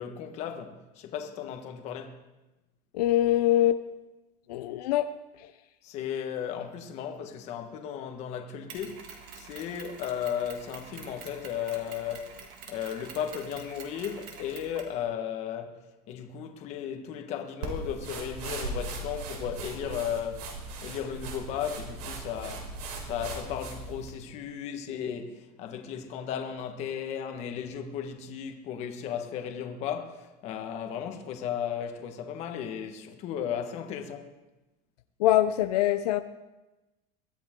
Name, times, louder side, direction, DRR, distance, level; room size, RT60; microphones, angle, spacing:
voice 1, 0.0-2.2 5.8-12.4 12.7-15.8 16.1-20.5 20.8-22.7 23.0-34.3, left 8 dB, 35° left, 1.6 m, -35 dB
voice 2, 2.9-3.8 4.5-5.1 35.2-36.2, left 13 dB, 80° left, 0.8 m, -23 dB
Mechanisms, 8.7-15.0, right 6 dB, 45° right, 2.6 m, -47 dB
sound 1, 17.6-24.1, right 3 dB, 80° right, 4.7 m, -38 dB
23.0 x 14.0 x 3.8 m
supercardioid pair, 175°, 20 cm